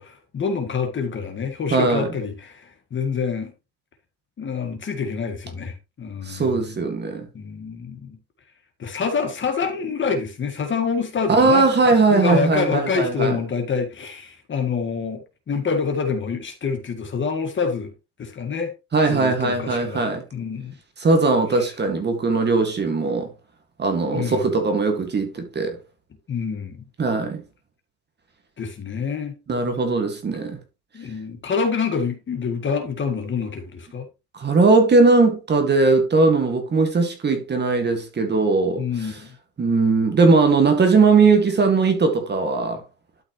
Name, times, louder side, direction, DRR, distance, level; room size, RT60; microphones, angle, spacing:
voice 1, 0.0-3.5 4.4-6.7 7.3-8.2 8.8-11.7 12.1-17.9 18.2-18.7 19.1-20.0 20.3-20.8 21.5-21.6 24.0-24.5 26.3-26.8 28.6-29.4 30.9-34.1 38.8-39.3, left 5 dB, 25° left, 1.8 m, -27 dB
voice 2, 1.7-2.1 6.3-7.3 11.3-13.4 18.9-20.2 21.0-23.3 23.8-25.8 27.0-27.4 29.5-30.6 34.3-38.8 39.6-42.8, right 3 dB, 20° right, 1.9 m, -19 dB
12.0 x 5.9 x 3.0 m
cardioid pair, 140°, 46 cm